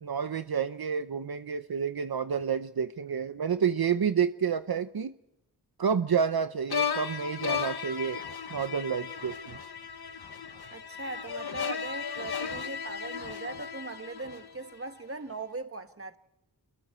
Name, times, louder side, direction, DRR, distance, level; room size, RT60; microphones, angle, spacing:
voice 1, 0.0-5.1 5.8-8.2 8.5-9.6, right 7 dB, 65° right, 0.9 m, -29 dB
sound 1, 6.7-14.9, left 6 dB, 70° left, 1.5 m, -35 dB
voice 2, 10.7-16.2, right 3 dB, 35° right, 1.5 m, -40 dB
28.5 x 22.5 x 4.5 m
wide cardioid pair, 90°, 40 cm